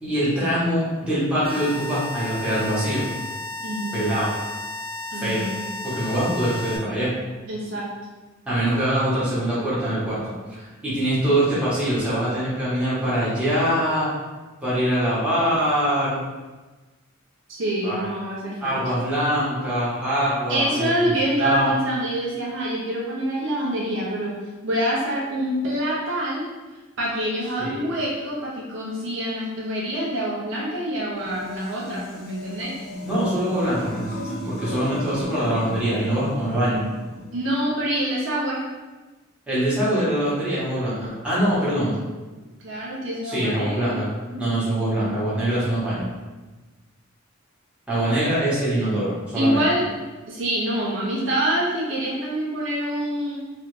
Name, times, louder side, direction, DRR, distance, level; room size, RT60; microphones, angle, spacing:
voice 1, 0.0-3.1 3.9-4.3 5.1-5.4 5.8-7.1 8.4-14.1 14.6-16.2 17.8-18.0 18.6-20.9 21.4-21.7 27.6-28.0 33.0-36.8 39.5-41.9 43.2-44.1 44.4-46.1 47.9-49.6, right 1 dB, 5° right, -11 dB, 1.2 m, -23 dB
sound 1, 1.4-6.8, left 2 dB, 80° left, 1.0 m, -33 dB
voice 2, 3.6-4.0 5.1-5.7 7.5-7.9 17.5-18.8 20.5-24.3 24.6-26.5 27.0-32.7 37.3-38.6 42.6-44.0 44.3-44.4 44.7-45.3 49.3-49.8 50.3-53.4, equal, 65° right, -5 dB, 0.7 m, -26 dB
sound 2, 31.1-37.4, equal, 45° left, 0.5 m, -35 dB
3.1 x 2.5 x 3.1 m, 1.2 s
head